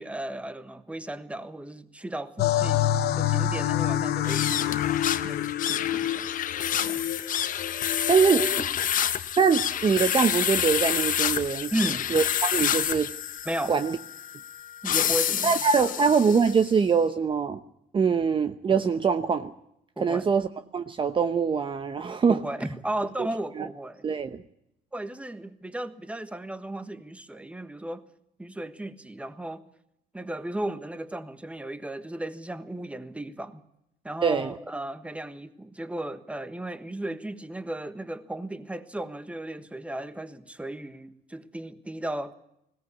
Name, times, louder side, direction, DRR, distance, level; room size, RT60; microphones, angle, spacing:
voice 1, 0.0-2.9 3.2-4.8 5.2-6.3 6.7-7.1 8.3-8.7 11.7-12.1 13.4-13.8 14.8-15.6 15.8-15.9 20.0-20.3 22.3-24.1 24.9-28.1 28.4-29.6 30.1-33.6 34.0-42.3, right 1 dB, 5° right, 1.4 m, -35 dB
sound 1, 2.4-8.6, left 11 dB, 75° left, 1.0 m, -27 dB
sound 2, 4.2-16.7, left 10 dB, 50° left, 1.2 m, -28 dB
voice 2, 8.1-8.4 9.4-11.7 12.1-13.1 13.7-14.0 15.4-17.6 17.9-19.5 20.0-20.5 20.7-22.4 23.6-23.7 24.0-24.4 34.2-34.5, right 6 dB, 30° right, 0.9 m, -23 dB
20.5 x 17.0 x 8.4 m
cardioid pair, 110°, 17 cm